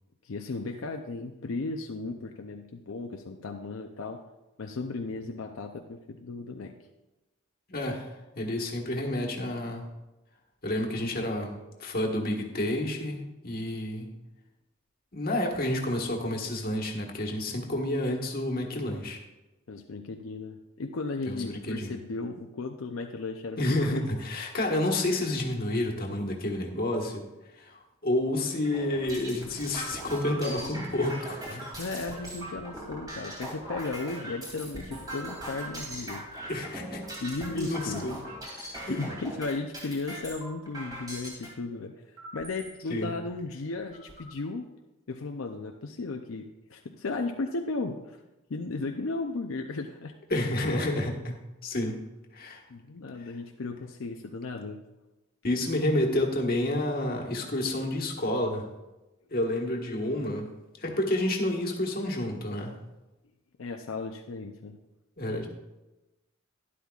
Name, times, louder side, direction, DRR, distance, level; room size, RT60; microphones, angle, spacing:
voice 1, 0.2-4.2 4.6-6.7 19.7-24.1 31.8-36.2 37.2-38.1 38.9-44.7 45.1-48.2 48.5-50.1 52.7-54.8 63.6-64.8, left 3 dB, 80° left, 3 dB, 0.6 m, -35 dB
voice 2, 7.7-9.8 10.6-14.1 15.1-19.2 21.3-21.9 23.6-27.3 27.6-31.7 36.5-37.0 37.5-38.2 38.8-39.0 42.9-43.1 50.3-52.1 52.3-52.6 53.2-53.3 55.4-58.7 59.3-60.5 60.8-62.7 65.2-65.5, left 1 dB, 45° left, 1 dB, 1.5 m, -30 dB
sound 1, 28.6-41.5 42.2-42.7 43.3-43.4 43.7-44.3, right 1 dB, 20° right, 2.7 m, -40 dB
12.0 x 11.0 x 2.4 m, 1.0 s
head